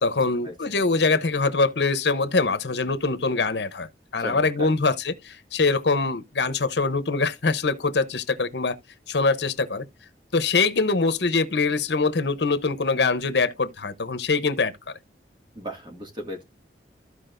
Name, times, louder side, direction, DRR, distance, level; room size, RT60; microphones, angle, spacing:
voice 1, 0.0-8.8 9.1-9.9 10.3-15.0, left 4 dB, 70° left, 0.9 m, -23 dB
voice 2, 4.2-4.7 15.6-16.4, equal, 25° right, 2.0 m, -35 dB
14.5 x 4.8 x 2.6 m
head